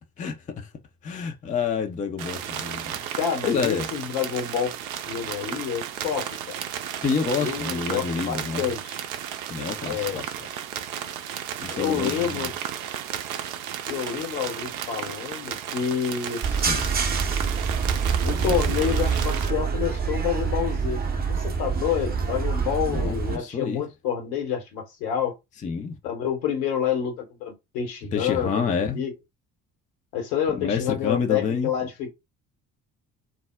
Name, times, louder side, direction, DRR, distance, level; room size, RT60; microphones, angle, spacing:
voice 1, 0.2-0.7 1.0-3.0 3.4-3.9 7.0-8.7 9.5-10.3 11.6-12.5 16.7-16.9 18.3-18.6 22.8-23.8 25.6-26.0 28.1-29.1 30.5-31.7, left 6 dB, 20° left, 0.5 m, -28 dB
sound 1, 2.2-19.5, right 9 dB, 65° right, 0.6 m, -34 dB
voice 2, 3.2-4.7 5.1-6.5 7.4-9.1 9.9-10.2 11.7-12.5 13.9-16.6 16.9-17.1 18.2-21.0 21.3-25.3 26.0-28.6 28.9-29.1 30.1-32.1, left 8 dB, 65° left, 1.1 m, -28 dB
sound 2, 16.4-23.4, right 5 dB, 20° right, 0.7 m, -26 dB
2.3 x 2.0 x 3.3 m
figure-of-eight pair, 50°, 45 cm